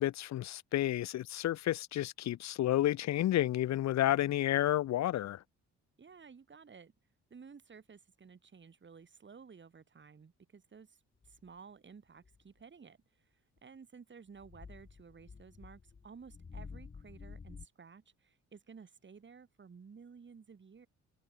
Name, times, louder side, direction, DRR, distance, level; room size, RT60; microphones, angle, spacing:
voice 1, 0.0-5.4, left 13 dB, 65° left, 0.8 m, -31 dB
voice 2, 6.0-6.9 7.3-20.9, right 5 dB, 40° right, 6.4 m, -55 dB
sound 1, 11.2-11.5 12.3-12.6 13.6-13.7 14.3-17.7, left 5 dB, 30° left, 1.8 m, -50 dB
cardioid pair, 90°, 30 cm